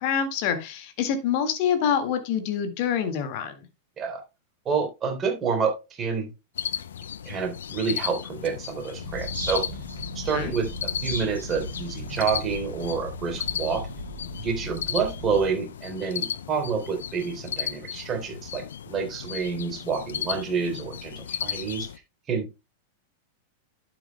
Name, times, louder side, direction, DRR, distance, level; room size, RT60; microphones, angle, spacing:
voice 1, 0.0-3.6 10.3-10.5, left 8 dB, 50° left, 8 dB, 1.9 m, -26 dB
voice 2, 4.7-6.3 7.3-9.7 10.2-13.8 14.4-21.9 22.3-22.5, right 5 dB, 25° right, 4 dB, 3.8 m, -28 dB
sound 1, 6.6-22.0, left 9 dB, 70° left, 0.6 m, -35 dB
sound 2, 8.9-15.5, left 1 dB, 85° left, 4.8 m, -36 dB
11.5 x 9.2 x 2.2 m, 0.25 s
figure-of-eight pair, 95°, 0 cm